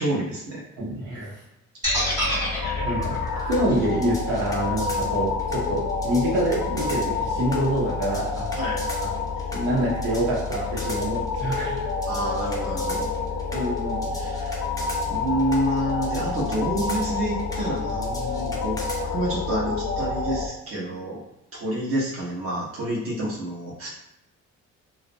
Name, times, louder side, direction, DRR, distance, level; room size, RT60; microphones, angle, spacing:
voice 1, 0.0-0.6 8.5-8.8 12.0-13.1 14.1-14.6 15.1-18.8 19.0-21.2 21.5-23.9, right 1 dB, 45° right, -5 dB, 0.9 m, -28 dB
voice 2, 0.8-1.4 2.2-2.6 2.8-3.2 3.5-8.5 9.0-9.1 9.5-11.9 13.5-14.1, right 1 dB, 85° right, -5 dB, 0.9 m, -26 dB
sound 1, 1.8-5.9, equal, 10° right, 1.2 m, -29 dB
sound 2, 1.9-20.5, left 4 dB, 60° left, 0.5 m, -28 dB
sound 3, 3.0-19.0, left 1 dB, 10° left, 0.5 m, -39 dB
2.4 x 2.0 x 2.5 m, 0.88 s
cardioid pair, 90°, 30 cm